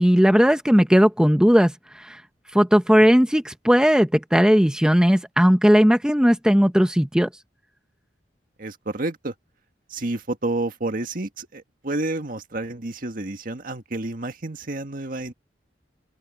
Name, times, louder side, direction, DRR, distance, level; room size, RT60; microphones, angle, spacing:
voice 1, 0.0-2.2 2.5-7.3, equal, 5° right, 0.9 m, -17 dB
voice 2, 8.6-9.3 9.9-15.3, right 2 dB, 55° right, 1.7 m, -30 dB
open air
head